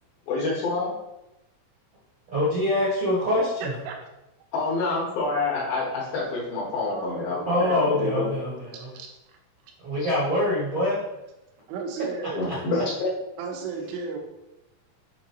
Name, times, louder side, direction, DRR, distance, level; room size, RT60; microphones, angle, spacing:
voice 1, 0.3-0.9 4.5-8.3 12.3-13.1, left 3 dB, 70° left, -5 dB, 3.4 m, -27 dB
voice 2, 2.3-3.7 7.5-8.9 9.8-11.0 12.2-12.6, left 1 dB, 55° right, -7 dB, 1.3 m, -25 dB
voice 3, 3.6-4.1 6.9-7.8 8.9-9.1 11.7-12.4 13.4-14.2, right 5 dB, 80° right, 2 dB, 2.7 m, -34 dB
9.7 x 3.8 x 3.1 m, 0.92 s
omnidirectional pair, 4.3 m